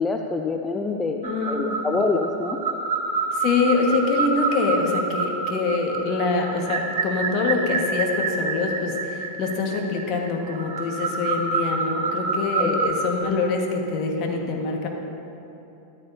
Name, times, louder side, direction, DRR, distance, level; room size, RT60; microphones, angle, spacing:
voice 1, 0.0-2.6 12.6-12.7, left 3 dB, 15° left, 3 dB, 0.5 m, -26 dB
voice 2, 1.2-1.8 3.3-14.9, left 4 dB, 40° left, 1 dB, 1.6 m, -25 dB
sound 1, 1.2-12.9, right 4 dB, 60° right, 1.4 m, -27 dB
13.5 x 12.5 x 2.8 m, 2.9 s
figure-of-eight pair, 90°, 0 cm